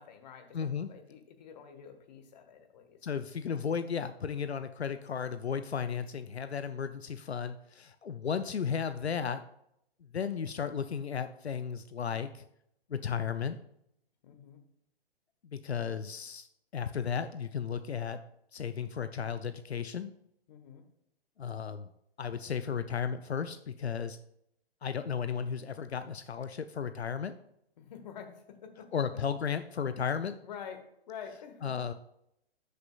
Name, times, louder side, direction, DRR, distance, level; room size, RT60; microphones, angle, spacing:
voice 1, 0.0-3.0 14.2-14.6 20.5-20.8 27.8-28.9 30.4-31.9, left 7 dB, 40° left, 6 dB, 1.3 m, -48 dB
voice 2, 0.5-0.9 3.0-9.4 10.1-12.4 12.9-13.6 15.5-16.5 16.7-18.2 18.5-20.1 21.4-21.9 22.2-24.2 24.8-27.3 28.9-30.4 31.6-31.9, left 7 dB, 85° left, 11 dB, 0.5 m, -34 dB
11.5 x 6.6 x 2.3 m, 0.77 s
figure-of-eight pair, 125°, 31 cm